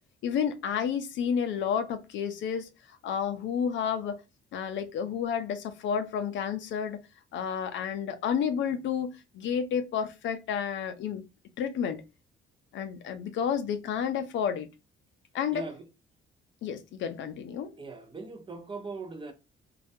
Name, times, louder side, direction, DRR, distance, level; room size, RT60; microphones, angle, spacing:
voice 1, 0.2-4.2 4.5-7.0 7.3-11.2 11.6-12.0 12.7-14.7 15.3-15.6 16.6-17.7, left 7 dB, 70° left, 0.4 m, -31 dB
voice 2, 15.5-15.9 17.8-19.3, right 3 dB, 25° right, 0.5 m, -40 dB
2.3 x 2.1 x 2.6 m
cardioid pair, 90°, 20 cm